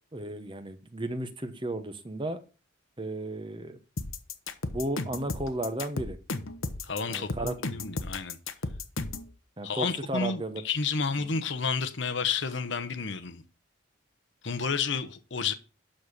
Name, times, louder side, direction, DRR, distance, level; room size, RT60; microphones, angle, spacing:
voice 1, 0.1-2.4 3.0-3.8 4.7-6.2 7.1-7.6 9.6-10.6 11.2-11.3, right 1 dB, 25° right, 1.1 m, -34 dB
sound 1, 4.0-9.3, left 3 dB, 85° left, 1.1 m, -34 dB
voice 2, 6.8-8.4 9.6-13.4 14.4-15.5, left 5 dB, 60° left, 0.9 m, -31 dB
12.0 x 4.3 x 6.6 m
head